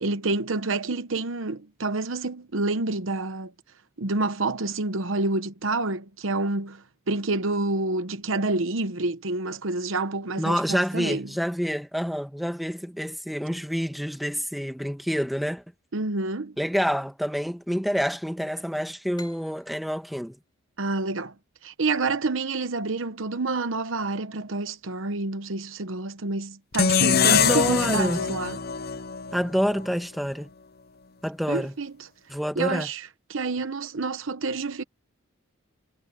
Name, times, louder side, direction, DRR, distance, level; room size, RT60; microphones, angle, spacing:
voice 1, 0.0-3.5 4.0-11.3 15.9-16.6 20.8-21.3 21.6-28.6 31.5-32.1 32.6-34.8, right 3 dB, 65° right, 1.0 m, -28 dB
voice 2, 10.4-15.6 16.6-20.4 27.2-28.2 29.3-30.5 31.2-31.7 32.3-32.9, equal, ahead, 1.4 m, -27 dB
sound 1, 19.1-22.6, left 2 dB, 20° left, 4.1 m, -52 dB
sound 2, 26.7-29.9, left 7 dB, 50° left, 0.7 m, -23 dB
head